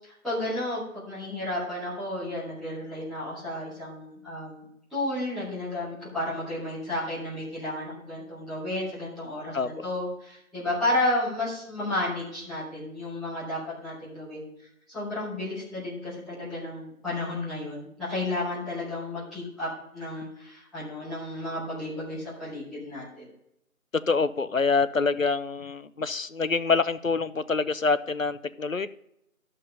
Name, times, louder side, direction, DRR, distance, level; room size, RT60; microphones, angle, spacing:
voice 1, 0.0-14.5 14.9-23.3, left 1 dB, ahead, -17 dB, 1.7 m, -32 dB
voice 2, 9.5-9.9 24.1-28.9, left 4 dB, 65° left, 13 dB, 0.7 m, -26 dB
12.0 x 5.5 x 5.4 m, 0.77 s
figure-of-eight pair, 180°, 43 cm